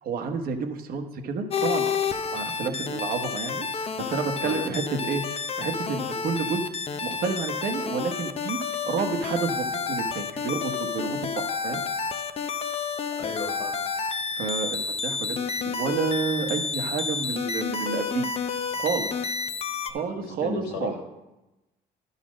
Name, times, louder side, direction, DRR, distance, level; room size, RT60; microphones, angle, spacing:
voice 1, 0.0-1.9 2.3-5.2 5.6-6.7 7.0-8.6 8.8-11.8 14.4-15.4 15.6-18.3 18.7-19.1 19.9-21.0, right 5 dB, 60° right, 6 dB, 1.1 m, -30 dB
sound 1, 1.5-19.9, left 5 dB, 35° left, 0.6 m, -30 dB
voice 2, 13.2-13.8 20.1-21.0, left 3 dB, 85° left, 1 dB, 1.8 m, -34 dB
11.5 x 4.1 x 6.2 m, 1.0 s
cardioid pair, 110°, 17 cm